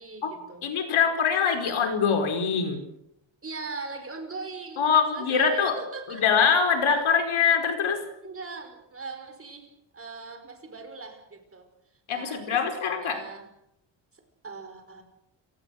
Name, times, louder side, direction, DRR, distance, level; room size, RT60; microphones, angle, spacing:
voice 1, 0.0-0.7 3.4-6.4 8.2-11.6 12.1-12.6 13.0-13.5 14.1-15.0, right 4 dB, 25° right, 6 dB, 5.1 m, -40 dB
voice 2, 0.6-2.9 4.8-5.8 6.1-8.1 12.1-13.2, left 6 dB, 80° left, 6 dB, 5.0 m, -23 dB
29.5 x 18.0 x 6.6 m, 0.80 s
wide cardioid pair, 135°, 48 cm